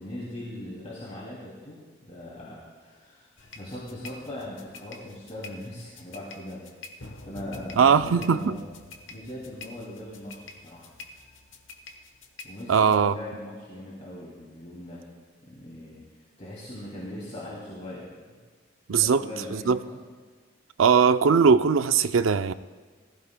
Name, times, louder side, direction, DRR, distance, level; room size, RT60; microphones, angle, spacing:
voice 1, 0.0-6.6 7.2-8.6 9.1-10.8 12.4-15.0 15.4-16.0 16.4-18.4 18.9-20.0, left 1 dB, 35° left, 2.7 m, -40 dB
sound 1, 3.4-13.0, left 3 dB, 75° left, 1.1 m, -46 dB
voice 2, 7.8-8.5 12.7-13.2 18.9-19.2 19.5-19.8 20.8-22.5, right 6 dB, 90° right, 0.5 m, -20 dB
20.0 x 15.0 x 2.2 m
head